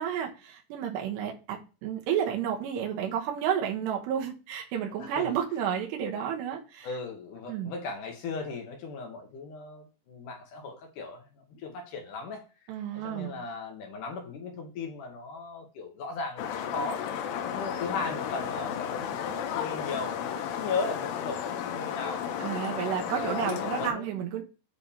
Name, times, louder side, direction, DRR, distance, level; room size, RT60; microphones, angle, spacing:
voice 1, 0.0-6.9 7.5-7.7 12.7-13.4 22.4-24.4, right 9 dB, 85° right, 1 dB, 3.1 m, -31 dB
voice 2, 5.0-5.4 6.8-12.5 12.9-16.5 16.7-17.1 17.4-22.4 23.1-24.2, left 4 dB, 70° left, 2 dB, 2.0 m, -37 dB
sound 1, 16.4-23.9, left 8 dB, 90° left, 2.9 m, -33 dB
8.3 x 5.0 x 2.8 m, 0.32 s
omnidirectional pair, 4.9 m